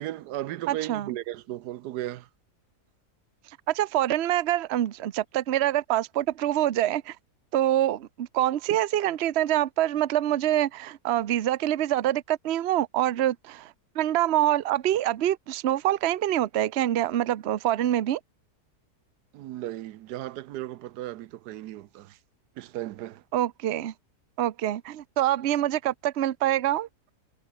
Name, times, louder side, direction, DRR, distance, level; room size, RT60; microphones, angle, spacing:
voice 1, 0.0-2.3 19.3-22.2 22.6-23.2, right 14 dB, 85° right, 1.2 m, -36 dB
voice 2, 0.7-1.1 3.7-7.2 7.5-18.2 23.3-23.9 24.4-26.9, right 13 dB, 55° right, 0.8 m, -25 dB
omnidirectional pair, 1.7 m